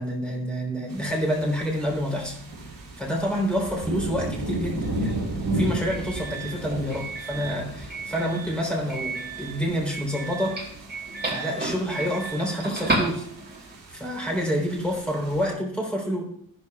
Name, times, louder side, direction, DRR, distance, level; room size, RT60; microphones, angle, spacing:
voice 1, 0.0-2.4 3.0-5.1 5.5-10.7 11.2-13.3 13.9-16.3, equal, 5° left, -2 dB, 3.5 m, -28 dB
sound 1, 0.9-15.5, right 1 dB, 65° right, 3.1 m, -35 dB
Doorbell, 4.7-13.7, right 2 dB, 25° right, 2.2 m, -33 dB
14.0 x 12.0 x 2.4 m, 0.65 s
wide cardioid pair, 170°, 37 cm